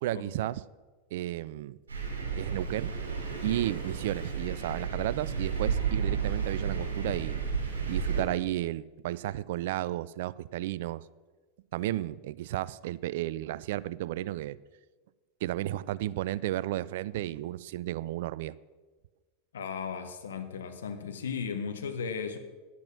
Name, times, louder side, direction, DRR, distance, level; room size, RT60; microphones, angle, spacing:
voice 1, 0.0-0.6 1.1-1.8 2.4-2.9 3.4-7.4 7.9-11.1 11.7-14.6 15.4-18.6, right 14 dB, 65° right, 19 dB, 0.3 m, -33 dB
Thunder, 1.9-8.2, right 6 dB, 80° right, 2.7 m, -32 dB
voice 2, 19.5-22.4, left 6 dB, 75° left, 8 dB, 1.1 m, -35 dB
10.5 x 8.6 x 6.1 m, 1.3 s
figure-of-eight pair, 90°, 0 cm